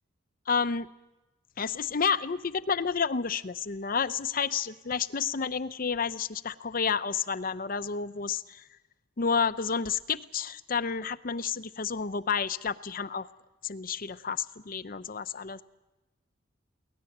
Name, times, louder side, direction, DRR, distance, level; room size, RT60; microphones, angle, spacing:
voice 1, 0.5-0.9 1.6-8.6 9.2-13.3 13.6-15.6, left 6 dB, 45° left, 13 dB, 0.7 m, -30 dB
23.5 x 18.0 x 8.0 m, 1.0 s
head